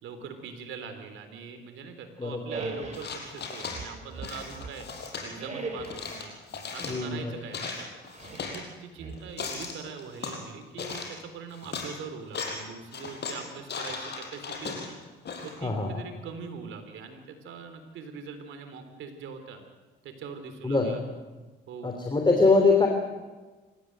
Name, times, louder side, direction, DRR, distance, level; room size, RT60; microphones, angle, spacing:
voice 1, 0.0-4.9 5.2-6.3 6.7-7.9 8.5-15.0 15.4-19.6 20.0-21.0 21.7-21.9, right 5 dB, 80° right, 7 dB, 3.7 m, -42 dB
sound 1, 2.5-3.1 3.7-4.9 5.4-6.2 8.1-8.6 9.0-9.6, right 3 dB, 35° right, 5.4 m, -38 dB
sound 2, 2.9-3.8 4.2-5.3 5.8-7.0 7.4-8.6 9.1-10.4 10.8-11.2 11.5-11.9 12.2-12.6 12.9-15.6, left 5 dB, 60° left, 5.2 m, -37 dB
voice 2, 6.8-7.3 15.6-15.9 20.6-21.0 21.8-22.9, left 3 dB, 25° left, 3 dB, 3.1 m, -23 dB
27.5 x 15.0 x 8.0 m, 1.2 s
cardioid pair, 90°, 20 cm